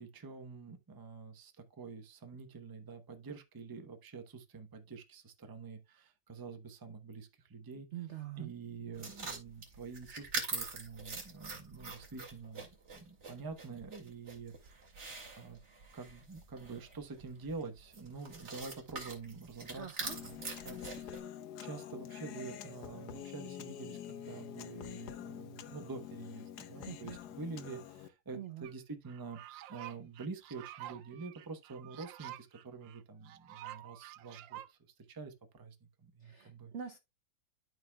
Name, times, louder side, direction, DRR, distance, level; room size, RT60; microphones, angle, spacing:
voice 1, 0.0-7.9 8.4-12.7 12.9-14.8 15.4-15.6 15.9-21.2 21.6-29.4 29.7-34.8 35.1-35.8 36.0-36.7, right 4 dB, 20° right, 0.5 m, -47 dB
voice 2, 7.9-8.5 19.8-20.2 26.9-27.2 28.3-28.7 36.2-37.0, right 10 dB, 65° right, 0.7 m, -44 dB
sound 1, 8.9-21.2, right 4 dB, 40° right, 2.4 m, -44 dB
Human voice, 20.1-28.1, left 10 dB, 65° left, 1.2 m, -46 dB
sound 2, 28.6-28.7 29.1-34.7, right 15 dB, 90° right, 1.4 m, -49 dB
12.5 x 4.8 x 2.3 m
omnidirectional pair, 2.0 m